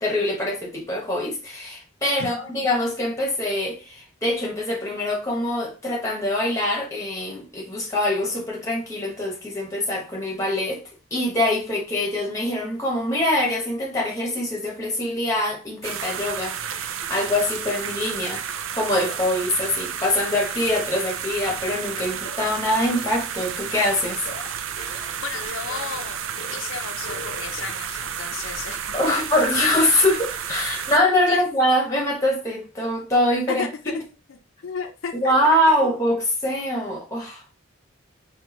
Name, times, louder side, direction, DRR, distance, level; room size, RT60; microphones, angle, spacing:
voice 1, 0.0-10.8 11.1-18.4 18.7-24.2 28.9-33.6 35.2-37.4, left 1 dB, 15° left, 1.0 m, -24 dB
sound 1, 15.8-31.0, right 8 dB, 85° right, 0.4 m, -31 dB
sound 2, 22.0-26.1 26.4-26.7 26.9-27.8, left 2 dB, 45° left, 0.7 m, -41 dB
voice 2, 25.2-26.2 26.5-28.8 31.3-31.4 33.5-34.0 34.6-35.3 35.8-35.9, left 6 dB, 80° left, 0.5 m, -33 dB
4.4 x 2.4 x 3.0 m
head